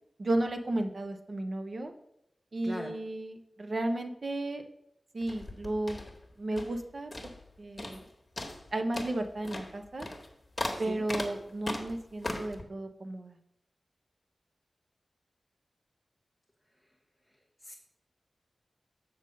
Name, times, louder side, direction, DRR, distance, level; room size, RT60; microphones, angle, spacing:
voice 1, 0.2-1.9 2.5-4.6 5.1-6.0 6.4-7.1 7.6-8.0 8.7-10.1 10.8-13.4, right 1 dB, 55° right, 6 dB, 0.8 m, -33 dB
voice 2, 2.6-2.9 10.9-11.0 17.6-17.7, equal, 5° right, 1 dB, 0.8 m, -39 dB
sound 1, 5.2-6.8 7.1-7.5 7.8-8.1 8.4-12.6, left 2 dB, 35° left, 1.2 m, -38 dB
7.1 x 3.8 x 6.4 m, 0.78 s
wide cardioid pair, 65°, 0 cm